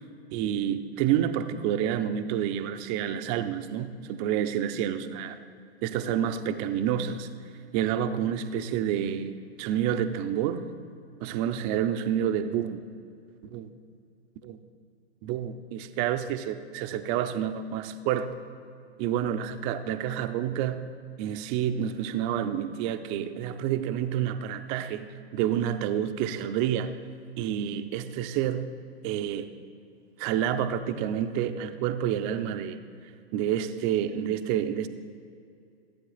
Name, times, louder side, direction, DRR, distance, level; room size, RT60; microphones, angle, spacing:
voice 1, 0.3-5.4 5.8-7.3 7.7-10.7 11.2-12.9 13.4-13.7 14.4-14.6 15.2-18.3 19.0-20.8 21.2-25.1 25.3-27.0 27.4-28.7 29.0-29.5 30.2-32.8 33.3-34.9, right 10 dB, 20° right, 10 dB, 0.4 m, -29 dB
15.0 x 8.4 x 3.9 m, 2.5 s
figure-of-eight pair, 115°, 31 cm